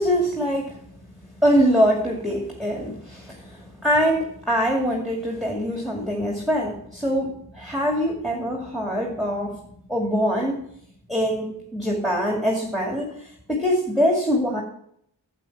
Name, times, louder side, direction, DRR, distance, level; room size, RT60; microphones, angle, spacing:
voice 1, 0.0-10.7 11.1-14.6, equal, ahead, -1 dB, 2.4 m, -24 dB
9.1 x 8.3 x 6.0 m, 0.69 s
cardioid pair, 50°, 43 cm